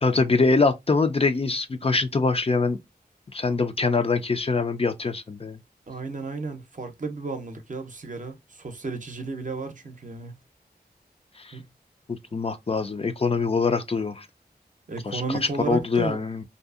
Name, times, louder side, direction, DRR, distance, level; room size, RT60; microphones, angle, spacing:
voice 1, 0.0-2.8 3.3-5.6 11.4-11.6 12.1-14.3 15.1-15.4 15.6-16.4, left 4 dB, 35° left, 0.4 m, -24 dB
voice 2, 5.9-10.3 11.5-11.6 14.9-16.2, right 3 dB, 50° right, 0.6 m, -33 dB
2.6 x 2.4 x 2.3 m
wide cardioid pair, 55°, 17 cm